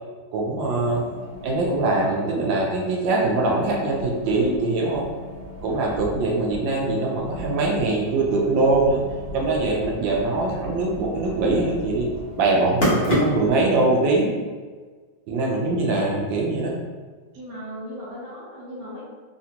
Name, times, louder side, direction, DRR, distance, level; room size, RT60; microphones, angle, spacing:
voice 1, 0.3-1.1 1.4-5.1 5.6-9.0 9.3-12.1 12.4-14.3 15.3-16.7, right 2 dB, 85° right, -1 dB, 1.4 m, -22 dB
sound 1, 0.8-13.7, equal, 40° left, 1.0 m, -32 dB
voice 2, 17.4-19.0, equal, 60° right, -10 dB, 1.3 m, -37 dB
3.9 x 2.1 x 2.8 m, 1.5 s
omnidirectional pair, 2.0 m